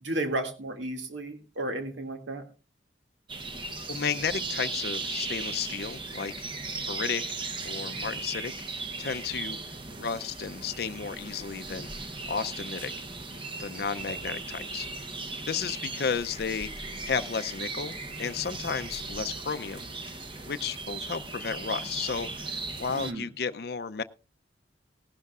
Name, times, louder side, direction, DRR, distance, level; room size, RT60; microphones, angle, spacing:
voice 1, 0.0-2.4 22.9-23.3, right 1 dB, 85° right, 5 dB, 2.2 m, -33 dB
sound 1, 3.3-23.1, right 3 dB, 25° right, 0.8 m, -37 dB
voice 2, 3.8-6.3 6.8-8.5 9.0-9.6 10.0-11.9 12.3-12.9 13.6-14.9 15.5-19.9 20.5-24.0, left 6 dB, 55° left, 10 dB, 0.5 m, -33 dB
18.0 x 12.0 x 2.4 m, 0.32 s
head